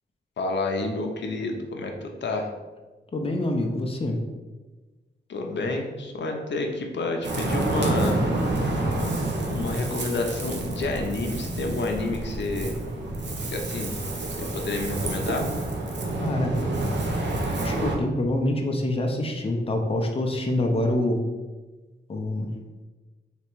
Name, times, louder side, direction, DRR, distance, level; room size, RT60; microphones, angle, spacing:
voice 1, 0.4-2.5 5.3-8.2 9.5-12.8 13.5-14.0 14.4-15.5, left 2 dB, 75° left, 2 dB, 0.6 m, -29 dB
voice 2, 3.1-4.2 16.2-16.6 17.6-21.2 22.1-22.5, left 1 dB, 30° left, 2 dB, 0.6 m, -26 dB
Ocean, 7.2-18.0, right 2 dB, 70° right, 0.7 m, -28 dB
3.4 x 3.0 x 4.5 m, 1.2 s
wide cardioid pair, 100°, 19 cm